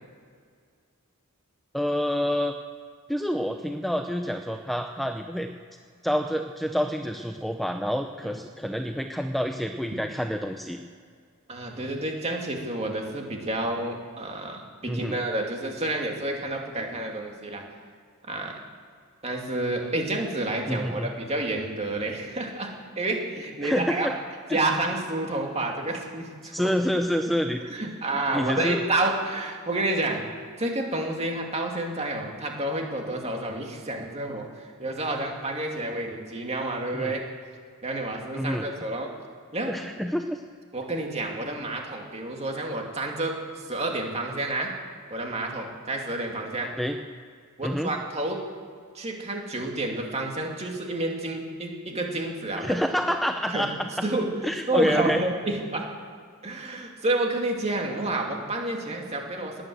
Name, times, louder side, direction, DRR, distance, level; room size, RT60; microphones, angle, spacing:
voice 1, 1.7-2.5 3.1-5.5 6.0-10.8 14.9-15.2 20.7-21.1 23.6-24.1 24.5-24.6 26.5-27.6 28.3-28.8 36.9-37.1 38.3-38.7 39.7-40.4 46.8-47.0 47.6-47.9 52.6-54.1 54.4-55.2, equal, ahead, 5 dB, 0.6 m, -27 dB
voice 2, 11.5-17.6 18.3-18.6 19.2-22.7 23.0-24.1 24.5-26.7 27.6-30.3 30.6-37.2 37.8-39.1 39.5-39.7 40.7-44.7 45.1-46.7 47.6-48.4 48.9-52.8 53.5-53.7 54.0-54.3 54.7-55.9 56.4-59.6, right 2 dB, 30° right, 1 dB, 2.6 m, -29 dB
20.0 x 9.1 x 7.9 m, 2.1 s
head